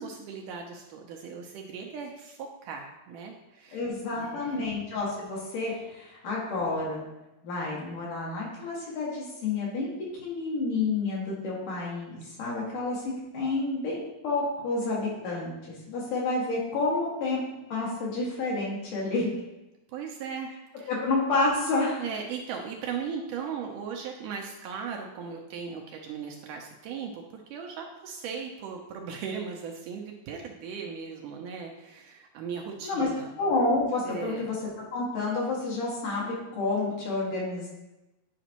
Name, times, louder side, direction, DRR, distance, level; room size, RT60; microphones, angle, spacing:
voice 1, 0.0-4.7 5.7-5.9 19.9-20.5 20.8-20.9 22.0-33.3 34.1-34.5, right 6 dB, 80° right, 1 dB, 2.0 m, -38 dB
voice 2, 3.7-7.1 7.4-9.9 10.2-17.4 17.7-19.3 20.9-22.0 32.8-33.1 33.4-34.6 34.9-37.7, left 3 dB, 65° left, -5 dB, 3.3 m, -29 dB
9.9 x 5.1 x 2.9 m, 0.99 s
omnidirectional pair, 4.1 m